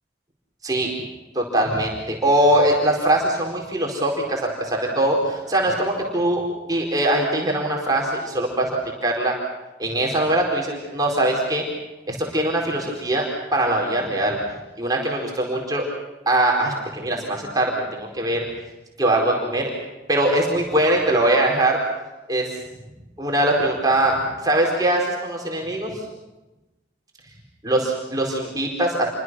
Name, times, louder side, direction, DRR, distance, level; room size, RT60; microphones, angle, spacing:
voice 1, 1.3-6.4 6.7-9.4 9.8-11.6 12.1-13.3 13.5-14.4 14.8-15.9 16.3-18.5 19.0-19.7 20.1-21.8 22.3-22.5 23.2-25.9 27.6-29.0, right 1 dB, 20° right, -1 dB, 4.5 m, -22 dB
28.5 x 24.5 x 6.3 m, 1.1 s
head